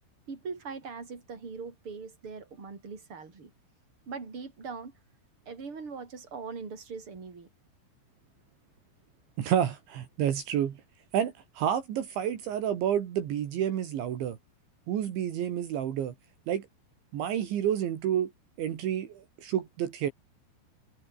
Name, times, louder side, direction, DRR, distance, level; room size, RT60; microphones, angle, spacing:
voice 1, 0.3-3.5 4.1-4.9 5.5-7.5, right 5 dB, 25° right, 5.5 m, -41 dB
voice 2, 9.4-10.8 11.1-14.4 14.9-16.1 16.5-16.7 17.1-18.3 18.6-20.1, right 10 dB, 70° right, 4.6 m, -29 dB
omnidirectional pair, 5.7 m